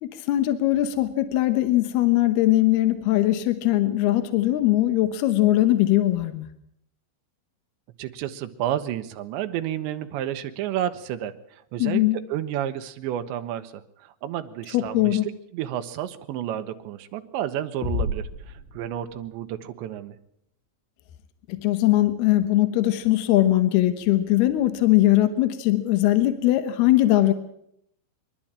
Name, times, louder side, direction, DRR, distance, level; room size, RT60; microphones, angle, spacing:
voice 1, 0.0-6.5 11.8-12.2 14.7-15.3 21.5-27.3, left 15 dB, 70° left, 10 dB, 2.5 m, -21 dB
voice 2, 8.0-20.2, right 11 dB, 75° right, 9 dB, 3.1 m, -31 dB
sound 1, 17.8-19.5, left 2 dB, 55° left, 4.7 m, -31 dB
24.5 x 12.0 x 8.8 m, 0.75 s
omnidirectional pair, 5.7 m